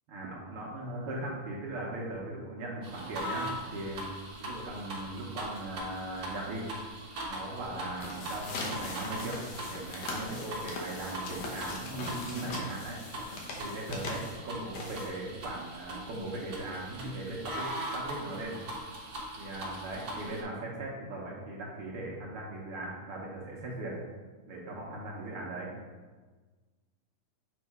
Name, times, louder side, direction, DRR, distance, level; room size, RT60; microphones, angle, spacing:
voice 1, 0.1-4.1 4.4-6.6 7.3-9.4 9.7-13.0 13.6-18.6 19.4-24.0 24.5-25.7, right 2 dB, 65° right, -3 dB, 1.4 m, -39 dB
sound 1, 2.8-20.4, right 1 dB, 90° right, 0.8 m, -41 dB
sound 2, 8.0-15.4, left 2 dB, 65° left, 1.9 m, -40 dB
7.1 x 3.4 x 4.7 m, 1.4 s
omnidirectional pair, 3.4 m